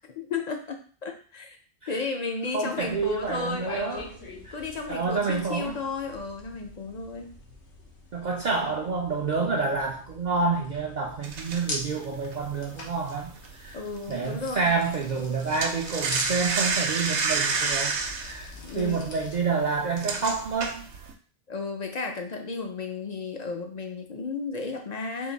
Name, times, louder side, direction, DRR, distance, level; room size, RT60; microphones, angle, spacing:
voice 1, 0.2-1.6 1.9-4.1 4.5-7.3 13.7-14.7 18.6-19.0 21.5-25.3, left 4 dB, 50° left, 3 dB, 0.6 m, -33 dB
voice 2, 2.5-4.1 4.4-4.6 4.9-5.8 8.1-13.8 14.1-20.9, right 4 dB, 55° right, -1 dB, 0.5 m, -28 dB
sound 1, 2.7-19.4, left 2 dB, 85° left, 1.2 m, -43 dB
sound 2, 11.2-14.0 14.3-14.5 14.8-21.1, right 4 dB, 85° right, 0.9 m, -29 dB
3.7 x 2.6 x 4.0 m, 0.41 s
omnidirectional pair, 1.1 m